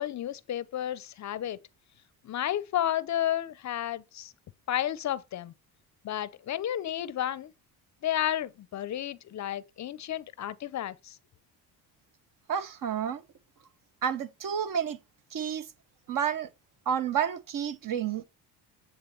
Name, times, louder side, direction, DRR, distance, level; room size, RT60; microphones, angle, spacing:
voice 1, 0.0-1.6 2.2-4.3 4.7-5.5 6.0-7.5 8.0-11.2, left 11 dB, 45° left, 0.5 m, -32 dB
voice 2, 12.5-13.2 14.0-15.0 15.3-15.7 16.1-16.5 16.9-18.2, right 8 dB, 55° right, 0.9 m, -30 dB
8.4 x 3.8 x 4.4 m
supercardioid pair, 80°, 41 cm